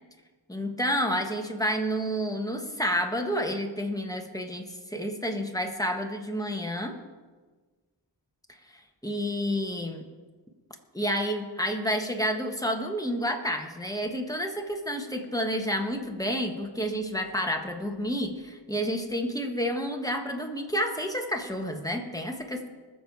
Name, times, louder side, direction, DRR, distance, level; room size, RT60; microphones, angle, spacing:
voice 1, 0.5-6.9 9.0-10.1 10.9-22.7, equal, 10° left, 3 dB, 1.5 m, -30 dB
20.0 x 7.2 x 4.7 m, 1.4 s
wide cardioid pair, 55°, 43 cm